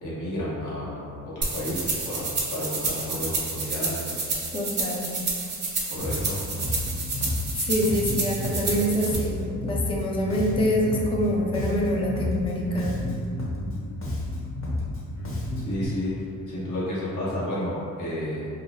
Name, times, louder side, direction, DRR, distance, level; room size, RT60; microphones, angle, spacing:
voice 1, 0.0-2.3 2.5-4.1 5.9-6.4 15.7-18.5, left 1 dB, 90° left, -8 dB, 0.9 m, -31 dB
sound 1, 1.4-9.2, right 3 dB, 35° right, 0.6 m, -30 dB
voice 2, 4.5-5.2 7.5-13.1, equal, 20° left, -2 dB, 0.4 m, -26 dB
Bass guitar, 6.0-15.9, left 1 dB, 45° left, 0.7 m, -31 dB
2.3 x 2.0 x 3.2 m, 2.4 s
cardioid pair, 90°, 30 cm